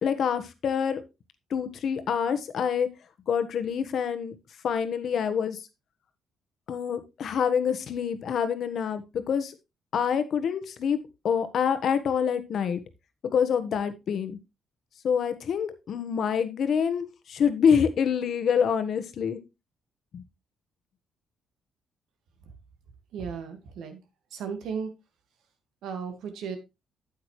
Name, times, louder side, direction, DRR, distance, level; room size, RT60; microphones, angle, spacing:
voice 1, 0.0-1.0 1.5-2.9 3.3-4.3 4.6-5.6 6.7-9.5 9.9-11.0 11.2-12.8 13.3-14.4 15.0-19.4 20.1-20.2, left 7 dB, 60° left, 10 dB, 1.3 m, -26 dB
voice 2, 23.1-24.0 24.3-24.9 25.8-26.6, right 6 dB, 80° right, 7 dB, 1.9 m, -35 dB
8.5 x 8.4 x 3.2 m, 0.24 s
cardioid pair, 90°, 0 cm